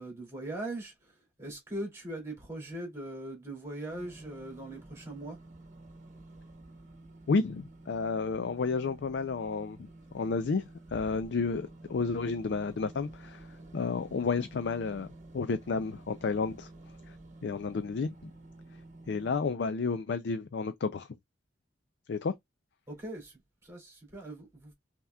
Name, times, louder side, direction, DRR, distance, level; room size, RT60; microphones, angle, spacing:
voice 1, 0.0-5.4 22.9-24.7, right 1 dB, 15° right, 2.4 m, -41 dB
sound 1, 3.9-19.5, right 2 dB, 40° right, 1.2 m, -51 dB
voice 2, 7.3-9.9 10.1-13.5 13.7-15.1 15.3-16.7 17.1-17.2 17.4-18.3 19.1-21.1 22.1-22.4, left 4 dB, 60° left, 0.4 m, -31 dB
5.5 x 2.9 x 2.3 m
head